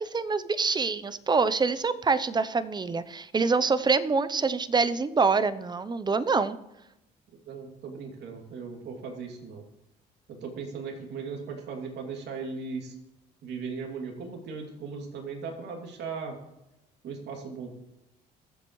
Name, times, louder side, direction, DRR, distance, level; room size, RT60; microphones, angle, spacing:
voice 1, 0.0-6.6, right 4 dB, 25° right, 14 dB, 0.7 m, -25 dB
voice 2, 7.5-9.6 10.3-12.9 13.4-16.3 17.0-17.7, right 5 dB, 70° right, 1 dB, 2.7 m, -37 dB
21.5 x 7.7 x 3.2 m, 0.90 s
supercardioid pair, 85°, 18 cm